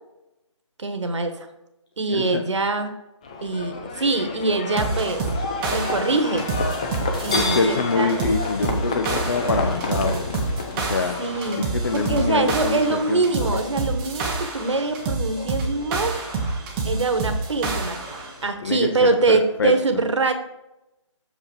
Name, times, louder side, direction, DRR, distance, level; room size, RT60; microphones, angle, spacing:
voice 1, 0.8-1.5 2.0-2.9 3.4-5.2 5.7-6.5 7.2-8.2 11.2-11.7 11.9-16.1 16.8-20.3, right 3 dB, 65° right, 7 dB, 1.2 m, -24 dB
voice 2, 2.1-2.4 7.3-10.4 10.8-11.3 11.6-13.2 18.6-19.8, left 4 dB, 50° left, 5 dB, 0.6 m, -25 dB
Livestock farm animals working animals, 3.2-19.7, left 3 dB, 15° left, 0.3 m, -32 dB
sound 1, 4.8-18.3, right 3 dB, 15° right, 0.7 m, -28 dB
6.8 x 5.3 x 4.7 m, 0.92 s
figure-of-eight pair, 150°, 16 cm